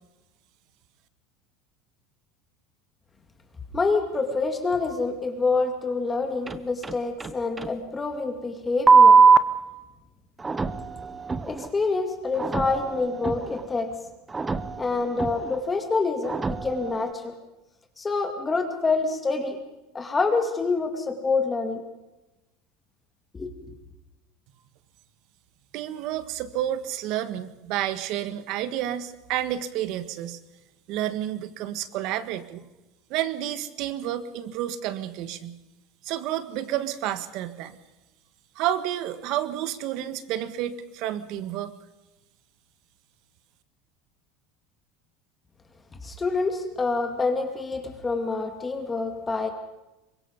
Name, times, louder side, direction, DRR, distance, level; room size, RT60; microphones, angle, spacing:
voice 1, 3.7-9.2 11.5-13.9 14.8-17.3 18.0-19.6 19.9-21.8 23.3-23.5 46.0-49.5, left 3 dB, 15° left, 5 dB, 2.3 m, -27 dB
sound 1, 6.5-7.3 7.6-7.7 8.9-9.4 10.4-11.7 12.3-13.6 14.3-15.6 16.2-17.1, right 5 dB, 15° right, 0.9 m, -21 dB
voice 2, 25.7-30.4 30.9-32.6 33.1-35.6 36.0-37.8 38.5-41.7, right 12 dB, 60° right, 12 dB, 1.6 m, -30 dB
24.0 x 21.0 x 5.3 m, 1.0 s
supercardioid pair, 130°, 0 cm